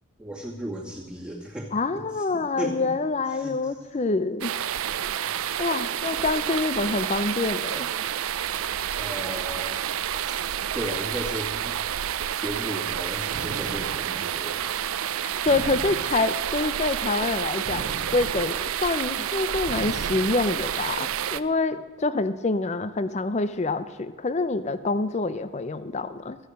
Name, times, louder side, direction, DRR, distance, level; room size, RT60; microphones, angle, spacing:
voice 1, 0.2-2.3 2.6-2.9 3.3-3.8 9.0-9.8 10.7-11.8 12.3-14.7, right 1 dB, 5° right, -4 dB, 2.2 m, -35 dB
voice 2, 1.7-4.5 5.6-7.9 15.2-26.4, left 3 dB, 30° left, 13 dB, 0.5 m, -26 dB
sound 1, 4.4-21.4, right 10 dB, 85° right, 0.5 m, -29 dB
sound 2, 13.3-14.2 15.5-16.4 17.7-18.7 19.7-20.5, right 2 dB, 65° right, 0.8 m, -39 dB
14.5 x 9.0 x 6.5 m, 1.5 s
head